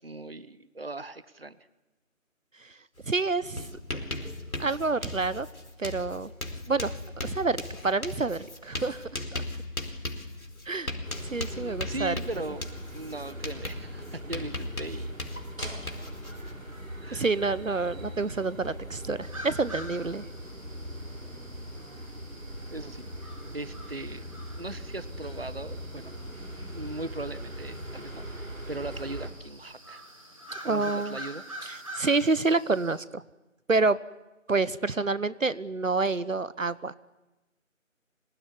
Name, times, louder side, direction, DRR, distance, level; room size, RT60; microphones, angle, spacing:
voice 1, 0.0-1.6 11.5-15.1 15.6-16.2 17.0-17.2 22.7-24.2 24.6-26.1 26.7-30.0 30.6-31.4, right 2 dB, 45° right, 16 dB, 1.0 m, -39 dB
Writing, 3.0-3.1 3.4-16.5, left 2 dB, 90° left, 4.6 m, -38 dB
voice 2, 3.1-3.7 4.6-5.5 5.8-6.3 6.7-7.0 7.2-9.0 9.3-9.4 10.7-10.9 11.3-12.2 17.1-20.2 30.6-31.2 31.6-33.2 33.7-34.0 34.5-36.9, right 3 dB, 70° right, 17 dB, 1.0 m, -28 dB
sound 1, 11.0-29.3, equal, 90° right, 7.5 m, -41 dB
sound 2, 19.2-33.0, right 1 dB, 25° right, 3.7 m, -46 dB
26.0 x 19.5 x 9.9 m, 1.1 s
figure-of-eight pair, 180°, 40 cm